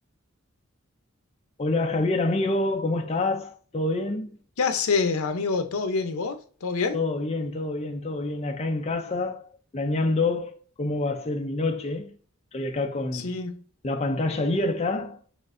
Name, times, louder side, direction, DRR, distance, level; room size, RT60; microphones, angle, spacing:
voice 1, 1.6-4.3 6.9-9.5 9.7-12.1 12.5-13.3 13.8-15.2, left 2 dB, 30° left, 0.5 m, -27 dB
voice 2, 4.6-7.0 13.1-13.6, left 4 dB, 80° left, 0.7 m, -26 dB
6.3 x 2.4 x 2.5 m
head